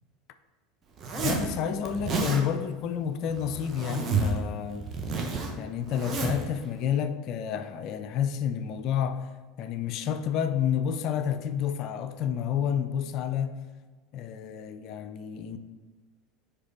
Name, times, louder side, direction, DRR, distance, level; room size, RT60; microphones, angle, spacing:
Zipper (clothing), 1.0-1.5 1.9-2.4 3.3-4.4 4.7-6.5, right 4 dB, 35° right, 0.9 m, -30 dB
voice 1, 1.2-4.9 5.6-9.3 9.6-13.6 14.1-15.6, left 8 dB, 45° left, 0.4 m, -30 dB
5.0 x 4.9 x 4.2 m
figure-of-eight pair, 75°, 0 cm